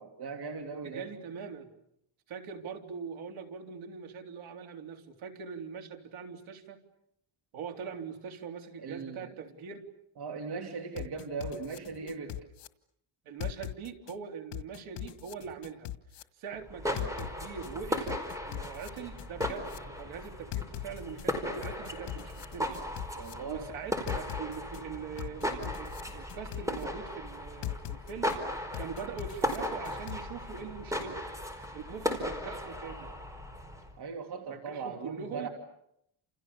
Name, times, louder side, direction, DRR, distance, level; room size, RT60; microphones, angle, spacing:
voice 1, 0.0-1.1 8.8-9.3 10.2-12.4 23.1-23.7 34.0-35.5, right 4 dB, 50° right, 3 dB, 2.9 m, -39 dB
voice 2, 0.8-1.7 2.3-6.8 7.5-9.9 13.3-15.9 16.4-22.7 23.4-31.2 31.5-33.1 34.5-35.5, right 6 dB, 70° right, 4 dB, 3.8 m, -42 dB
sound 1, 11.0-12.7 13.4-14.1 14.5-16.2 17.0-17.7 18.1-19.8 20.5-21.3 21.6-23.3 24.1-24.8 25.2-26.8 27.6-28.4 28.7-30.2, left 15 dB, 85° left, 1.7 m, -39 dB
sound 2, 16.6-33.9, equal, 5° right, 4.6 m, -37 dB
30.0 x 28.5 x 7.0 m, 0.77 s
cardioid pair, 150°, 49 cm